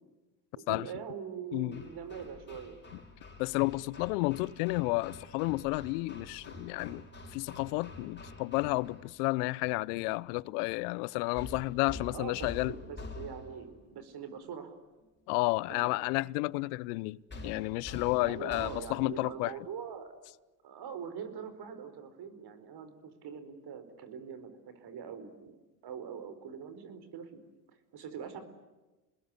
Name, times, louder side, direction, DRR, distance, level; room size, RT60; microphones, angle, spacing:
voice 1, 0.5-2.8 12.1-14.8 15.7-15.9 18.2-20.1 20.6-25.5 25.8-27.4 27.9-28.4, right 7 dB, 50° right, 4.8 m, -43 dB
voice 2, 1.5-1.8 3.4-7.0 7.3-12.7 15.3-19.5, left 23 dB, 70° left, 0.8 m, -31 dB
Hammer, 1.7-9.1 11.3-13.8 17.3-19.2, left 2 dB, 20° left, 5.9 m, -47 dB
28.5 x 21.0 x 9.7 m
hypercardioid pair, 70°, 49 cm